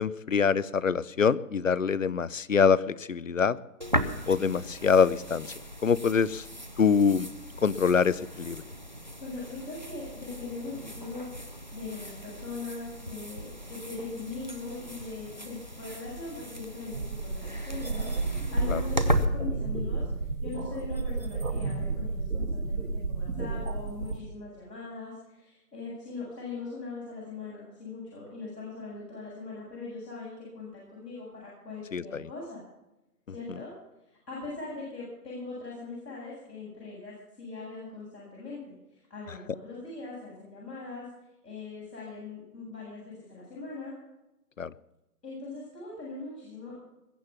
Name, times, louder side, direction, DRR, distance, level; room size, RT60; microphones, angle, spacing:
voice 1, 0.0-3.6 4.3-5.5 5.8-6.5 6.8-7.3 7.6-8.6 18.7-18.8 31.9-32.3 44.6-44.7, left 6 dB, 55° left, 21 dB, 0.6 m, -25 dB
sound 1, 3.8-19.3, equal, 30° right, 0.7 m, -35 dB
voice 2, 9.2-19.0 19.3-32.6 33.3-33.7 34.1-38.8 39.1-41.1 41.4-43.9 45.2-46.8, left 3 dB, 85° left, -6 dB, 7.9 m, -41 dB
sound 2, 16.9-24.2, right 3 dB, 60° right, 4.1 m, -32 dB
21.5 x 7.7 x 7.1 m, 0.94 s
hypercardioid pair, 175°, 47 cm